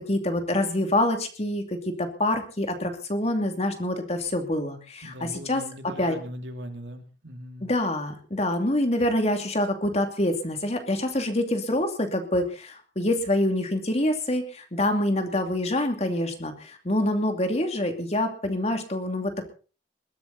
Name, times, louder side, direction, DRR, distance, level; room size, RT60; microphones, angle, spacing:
voice 1, 0.0-5.6 6.0-6.2 7.6-19.5, left 1 dB, 35° left, 5 dB, 2.7 m, -26 dB
voice 2, 5.0-7.7, equal, 75° right, 6 dB, 2.8 m, -40 dB
21.5 x 12.5 x 4.2 m, 0.38 s
head